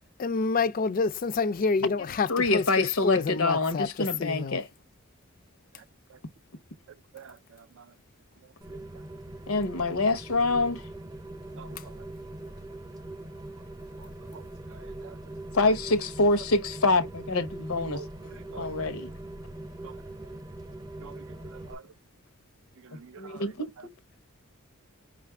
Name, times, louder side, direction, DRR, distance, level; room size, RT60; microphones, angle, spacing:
voice 1, 0.2-4.6, left 4 dB, 40° left, 0.4 m, -28 dB
voice 2, 2.3-4.7 9.5-10.8 15.5-18.0 18.6-19.1 23.2-23.7, left 3 dB, 75° left, 0.9 m, -26 dB
voice 3, 7.1-7.8 8.7-8.8 11.6-11.9 14.3-14.4 14.7-15.2 17.9-18.7 19.8-19.9 21.0-21.2 21.5-21.8 22.8-23.4, right 6 dB, 65° right, 0.4 m, -47 dB
Rain, 8.6-21.7, right 1 dB, 15° right, 0.5 m, -42 dB
5.3 x 2.5 x 3.3 m
head